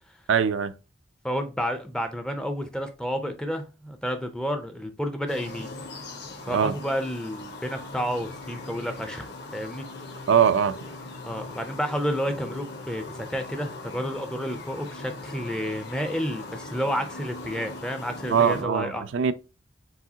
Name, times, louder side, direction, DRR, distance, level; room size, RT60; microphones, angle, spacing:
voice 1, 0.3-0.7 6.5-6.7 10.3-10.8 18.3-19.3, right 7 dB, 75° right, 0.4 m, -22 dB
voice 2, 1.2-5.7 6.4-9.9 11.2-19.0, equal, 5° left, 0.4 m, -30 dB
sound 1, 5.3-18.6, left 2 dB, 60° left, 1.1 m, -40 dB
4.8 x 3.6 x 2.7 m
head